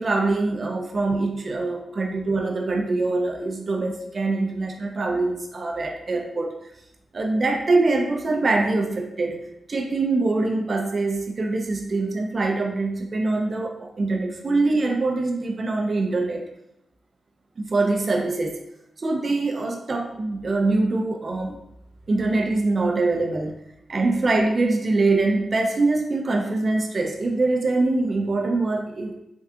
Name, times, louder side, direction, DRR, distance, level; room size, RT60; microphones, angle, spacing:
voice 1, 0.0-6.5 7.1-9.4 9.7-16.4 17.6-18.6 19.0-21.6 22.1-23.5 23.9-29.2, right 3 dB, 50° right, 2 dB, 0.5 m, -23 dB
3.5 x 2.3 x 2.7 m, 0.85 s
supercardioid pair, 45°, 0 cm